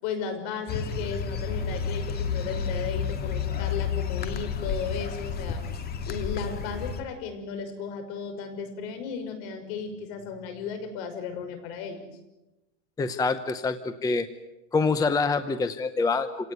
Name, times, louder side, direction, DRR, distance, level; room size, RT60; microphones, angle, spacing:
voice 1, 0.0-5.6 6.1-12.1, left 6 dB, 55° left, 7 dB, 6.1 m, -35 dB
sound 1, 0.7-7.0, left 6 dB, 25° left, 2.2 m, -31 dB
voice 2, 13.0-14.3 14.7-16.5, left 4 dB, 10° left, 10 dB, 0.8 m, -26 dB
27.5 x 18.0 x 9.4 m, 1.0 s
supercardioid pair, 150°, 36 cm